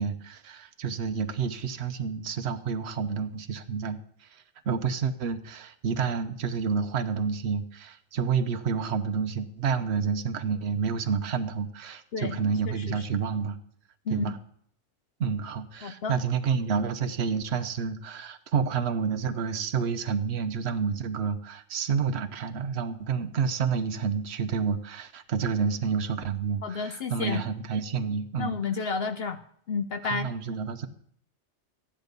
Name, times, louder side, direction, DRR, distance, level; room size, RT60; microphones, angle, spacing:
voice 1, 0.0-4.0 4.7-13.6 14.1-14.4 15.2-28.5 30.0-30.9, right 6 dB, 60° right, 8 dB, 1.1 m, -29 dB
voice 2, 12.6-13.1 14.1-14.3 15.8-16.2 26.6-27.4 28.4-29.4 29.7-30.3, left 5 dB, 60° left, 9 dB, 0.8 m, -31 dB
14.0 x 10.5 x 5.2 m, 0.64 s
omnidirectional pair, 1.2 m